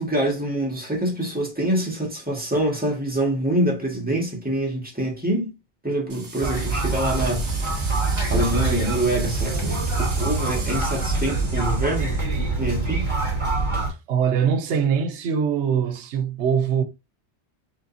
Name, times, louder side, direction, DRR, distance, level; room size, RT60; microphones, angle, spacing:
voice 1, 0.0-5.5 5.8-7.9 8.3-12.1 12.6-13.1, right 1 dB, 10° right, 1.8 m, -25 dB
sound 1, 6.1-12.2, right 3 dB, 60° right, 1.5 m, -38 dB
sound 2, 6.4-13.9, right 3 dB, 40° right, 2.1 m, -25 dB
voice 2, 14.1-16.8, right 7 dB, 80° right, 1.0 m, -22 dB
5.1 x 3.6 x 2.7 m
omnidirectional pair, 1.2 m